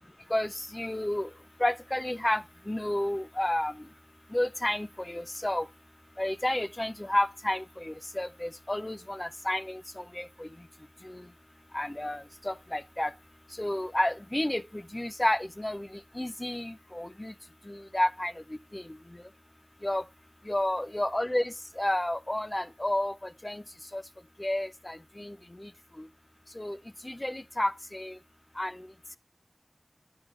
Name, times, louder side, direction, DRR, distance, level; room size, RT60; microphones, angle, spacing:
voice 1, 0.3-1.3 1.6-3.7 4.3-5.7 6.2-10.5 11.0-11.2 11.7-13.1 13.6-15.9 16.2-17.3 17.7-18.3 18.7-18.8 19.8-20.0 20.5-23.6 23.9-24.0 24.4-25.7 26.6-26.8 27.0-28.2 28.6-28.8, left 1 dB, 35° left, 0.5 m, -31 dB
10.5 x 4.8 x 2.9 m
wide cardioid pair, 45°, 0 cm